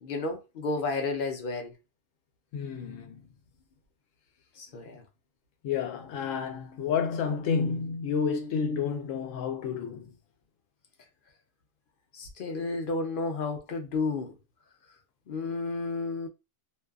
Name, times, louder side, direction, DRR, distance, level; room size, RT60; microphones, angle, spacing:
voice 1, 0.0-1.7 4.6-5.0 12.1-14.3 15.3-16.3, left 3 dB, 55° left, 0.6 m, -32 dB
voice 2, 2.5-3.2 5.6-10.1, left 6 dB, 85° left, 1.0 m, -30 dB
2.6 x 2.3 x 2.3 m
omnidirectional pair, 1.3 m